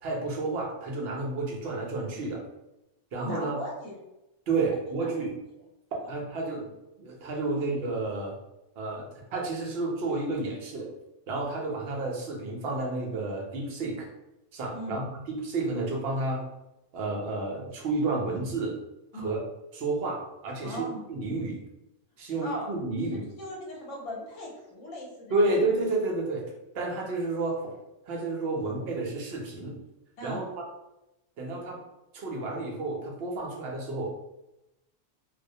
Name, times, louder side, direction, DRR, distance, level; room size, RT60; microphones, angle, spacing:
voice 1, 0.0-2.4 3.1-3.6 4.5-5.3 6.1-6.7 7.0-8.3 8.8-10.9 11.3-14.1 14.5-16.4 16.9-18.8 19.1-19.4 19.7-21.6 22.2-23.2 25.3-27.8 28.1-29.7 30.2-30.5 31.4-31.8 32.1-34.1, right 3 dB, 65° right, -1 dB, 0.8 m, -31 dB
voice 2, 3.2-3.9 5.0-5.1 6.0-6.1 14.7-15.0 19.1-19.4 20.6-21.0 22.4-22.7 23.1-25.5 30.2-30.4, left 1 dB, 85° left, -3 dB, 1.0 m, -38 dB
2.3 x 2.0 x 2.6 m, 0.92 s
omnidirectional pair, 1.2 m